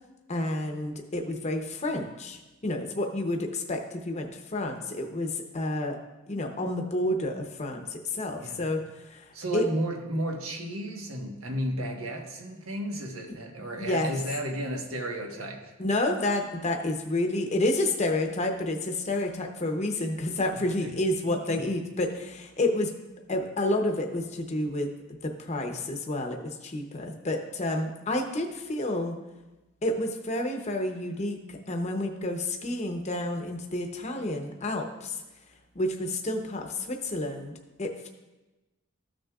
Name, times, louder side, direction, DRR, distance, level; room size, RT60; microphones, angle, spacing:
voice 1, 0.3-6.0 6.3-9.7 13.3-13.4 13.8-14.1 15.8-22.9 23.3-24.9 25.2-29.2 29.8-35.2 35.7-38.1, left 1 dB, 30° left, 4 dB, 0.8 m, -30 dB
voice 2, 9.3-15.7 20.8-20.9 21.5-21.6, right 1 dB, 85° right, 2 dB, 1.3 m, -33 dB
13.5 x 6.3 x 2.4 m, 1.1 s
head